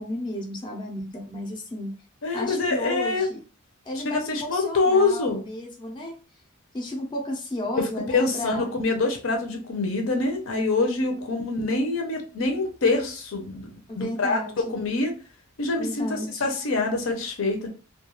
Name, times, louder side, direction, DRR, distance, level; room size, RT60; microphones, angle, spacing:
voice 1, 0.0-1.9 2.3-3.4 3.9-6.1 6.7-8.7 13.9-14.8 15.8-16.4, left 1 dB, 20° left, -1 dB, 0.5 m, -33 dB
voice 2, 2.2-3.3 4.1-5.4 7.8-15.1 15.6-17.7, left 3 dB, 65° left, 3 dB, 0.6 m, -25 dB
2.3 x 2.2 x 3.0 m, 0.37 s
head